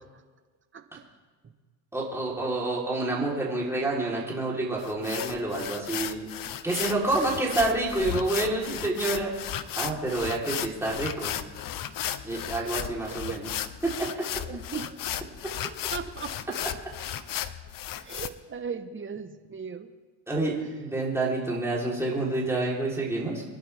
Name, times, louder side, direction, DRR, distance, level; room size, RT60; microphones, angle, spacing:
voice 1, 1.9-6.3 6.6-9.3 9.7-11.3 12.2-13.5 13.8-14.1 20.3-23.4, right 2 dB, 5° right, -5 dB, 3.9 m, -28 dB
sound 1, 4.8-18.3, left 11 dB, 45° left, 0.9 m, -35 dB
voice 2, 14.4-15.0 15.9-16.6 18.0-19.9, right 6 dB, 25° right, 8 dB, 1.3 m, -37 dB
24.5 x 11.0 x 3.6 m, 1.4 s
supercardioid pair, 95°, 47 cm